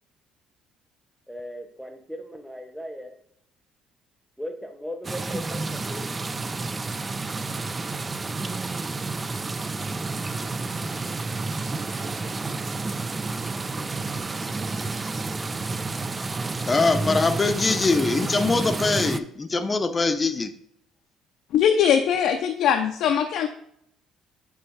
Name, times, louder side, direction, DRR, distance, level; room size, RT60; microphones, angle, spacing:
voice 1, 1.3-3.2 4.4-6.3, equal, ahead, 6 dB, 1.0 m, -37 dB
sound 1, 5.0-19.2, right 3 dB, 25° right, 0.4 m, -30 dB
voice 2, 16.6-20.5, left 3 dB, 25° left, 10 dB, 0.6 m, -23 dB
voice 3, 21.5-23.5, left 8 dB, 70° left, 5 dB, 0.6 m, -21 dB
8.4 x 3.1 x 4.6 m, 0.72 s
cardioid pair, 105°, 0 cm